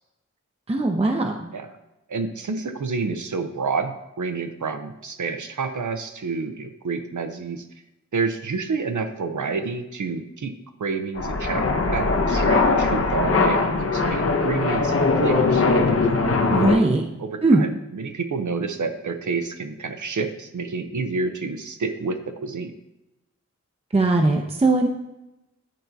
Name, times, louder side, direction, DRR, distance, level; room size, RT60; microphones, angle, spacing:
voice 1, 0.7-1.5 16.5-17.0 17.4-17.6 23.9-24.9, right 2 dB, 20° right, 2 dB, 0.5 m, -20 dB
voice 2, 2.1-7.6 8.1-10.5 10.8-11.6 11.9-15.6 16.6-16.8 17.2-22.7, right 4 dB, 80° right, 7 dB, 0.6 m, -29 dB
sound 1, 11.2-16.8, left 3 dB, 50° left, 0.7 m, -21 dB
10.0 x 4.4 x 2.7 m, 0.94 s
wide cardioid pair, 70°, 30 cm